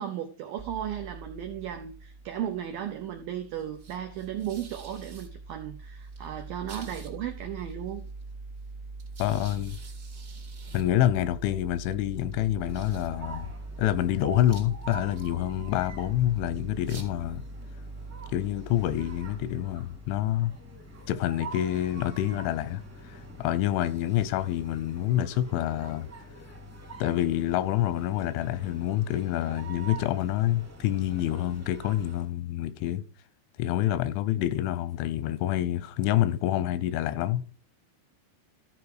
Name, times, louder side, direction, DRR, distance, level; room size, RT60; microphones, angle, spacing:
voice 1, 0.0-8.1, right 10 dB, 85° right, 2.0 m, -35 dB
sound 1, 0.6-20.5, right 3 dB, 40° right, 1.4 m, -43 dB
voice 2, 9.2-9.8 10.7-13.5 13.8-17.4 18.3-20.5 21.1-22.8 23.1-26.1 27.0-33.0 33.6-37.4, left 13 dB, 90° left, 3.2 m, -27 dB
sound 2, 12.6-32.3, right 1 dB, 10° right, 0.9 m, -45 dB
13.5 x 5.1 x 4.9 m
omnidirectional pair, 5.3 m